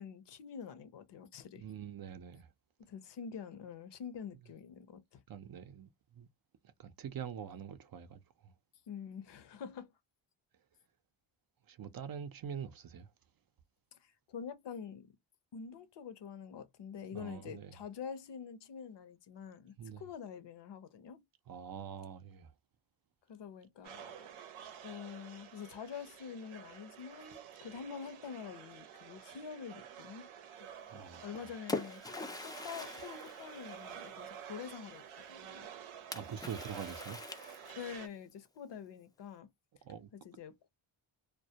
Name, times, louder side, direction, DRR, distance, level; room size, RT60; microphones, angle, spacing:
voice 1, 0.0-1.6 2.8-5.2 8.9-9.9 14.0-15.1 15.5-21.2 23.3-24.3 24.8-30.3 30.6-35.7 37.8-39.5 40.2-40.7, left 7 dB, 60° left, 0.7 m, -46 dB
voice 2, 1.6-2.5 5.3-6.3 6.8-8.5 11.7-13.1 17.1-17.7 19.8-20.0 21.5-22.5 30.9-31.3 36.1-37.2 39.8-40.1, right 8 dB, 50° right, 0.5 m, -45 dB
sound 1, 23.8-38.1, right 9 dB, 85° right, 0.7 m, -50 dB
Splash splatter, 31.1-34.3 36.1-38.0, left 2 dB, 10° left, 0.3 m, -43 dB
2.2 x 2.1 x 2.7 m
cardioid pair, 90°, 48 cm